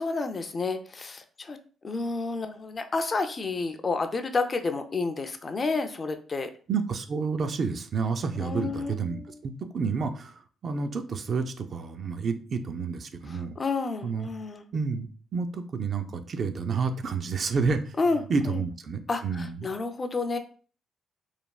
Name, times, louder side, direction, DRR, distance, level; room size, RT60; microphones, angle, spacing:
voice 1, 0.0-1.6 1.8-6.5 8.4-9.4 13.3-14.6 18.0-18.6 19.1-20.4, left 3 dB, 35° left, 7 dB, 0.3 m, -30 dB
voice 2, 6.7-13.6 14.0-14.3 14.7-18.0 18.3-19.7, right 5 dB, 50° right, 7 dB, 0.3 m, -30 dB
3.2 x 2.3 x 2.3 m, 0.41 s
cardioid pair, 90°, 0 cm